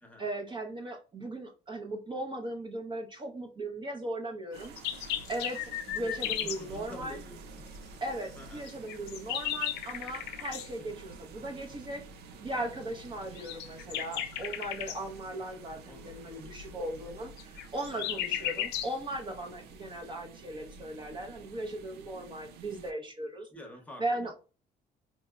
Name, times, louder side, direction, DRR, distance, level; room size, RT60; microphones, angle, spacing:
voice 1, 0.2-4.7 5.3-7.2 8.0-12.0 12.4-23.5 24.0-24.3, right 1 dB, 30° right, 1 dB, 0.7 m, -38 dB
sound 1, 4.5-22.9, right 4 dB, 75° right, 0.5 m, -50 dB
sound 2, 4.6-6.6 8.7-10.7 13.4-15.0 17.4-18.9, left 11 dB, 85° left, 0.5 m, -35 dB
voice 2, 6.0-7.7 8.4-8.7 10.7-11.1 13.1-13.3 15.8-16.8 17.9-18.6 23.5-24.3, left 1 dB, 10° left, 2 dB, 0.9 m, -50 dB
4.1 x 2.7 x 2.3 m, 0.34 s
cardioid pair, 110°, 17 cm